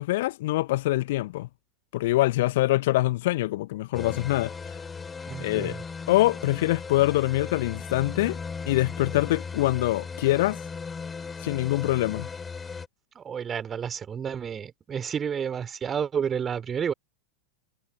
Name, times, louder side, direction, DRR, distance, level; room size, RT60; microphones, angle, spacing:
voice 1, 0.0-1.5 1.9-4.5 5.4-5.8 6.1-8.4 8.7-10.6 11.4-12.3, left 17 dB, 55° left, 1.2 m, -24 dB
sound 1, 3.9-12.9, left 5 dB, 15° left, 5.9 m, -37 dB
voice 2, 5.3-5.8 13.2-16.9, right 7 dB, 20° right, 3.7 m, -30 dB
figure-of-eight pair, 90°, 0 cm